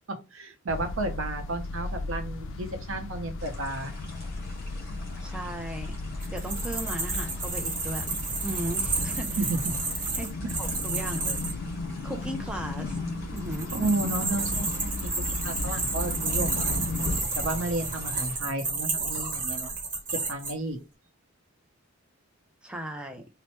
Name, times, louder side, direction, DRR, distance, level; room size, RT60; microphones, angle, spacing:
voice 1, 0.1-3.9 9.4-9.7 10.4-10.5 13.7-16.8 17.3-19.7 20.1-20.8, right 2 dB, 65° right, 0.7 m, -32 dB
sound 1, 0.7-17.2, left 2 dB, 65° left, 0.4 m, -35 dB
sound 2, 3.4-18.4, left 2 dB, 50° left, 1.3 m, -48 dB
voice 2, 5.2-5.9 6.3-8.1 8.4-9.4 10.1-10.3 10.6-11.6 12.0-13.0 13.3-13.7 22.6-23.2, right 1 dB, 5° right, 0.4 m, -36 dB
sound 3, 6.2-11.5 13.4-20.5, right 3 dB, 40° right, 1.0 m, -31 dB
3.2 x 2.1 x 2.9 m
head